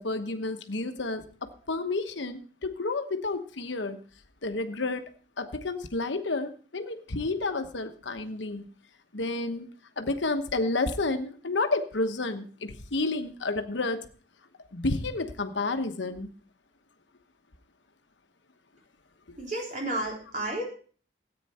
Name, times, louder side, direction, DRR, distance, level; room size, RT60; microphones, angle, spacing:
voice 1, 0.0-4.0 4.4-5.0 5.4-8.7 9.1-9.7 10.0-14.0 14.7-16.3 19.3-19.4, left 3 dB, 80° left, 8 dB, 1.1 m, -30 dB
voice 2, 19.4-20.6, right 1 dB, 40° right, -1 dB, 3.6 m, -32 dB
14.0 x 9.0 x 4.2 m, 0.42 s
head